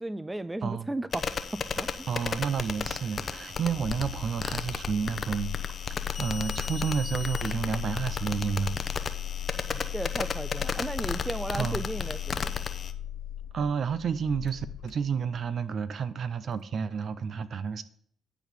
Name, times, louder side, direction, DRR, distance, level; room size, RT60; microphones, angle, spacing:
voice 1, 0.0-1.3 1.5-1.9 9.7-12.5, right 1 dB, 10° right, 0.4 m, -35 dB
sound 1, 1.1-12.9, left 5 dB, 45° left, 0.7 m, -35 dB
Engine starting, 1.5-15.6, left 11 dB, 85° left, 0.7 m, -37 dB
voice 2, 2.1-8.8 11.6-11.8 13.5-17.8, right 6 dB, 55° right, 0.7 m, -31 dB
10.0 x 4.1 x 6.8 m
cardioid pair, 90°, 0 cm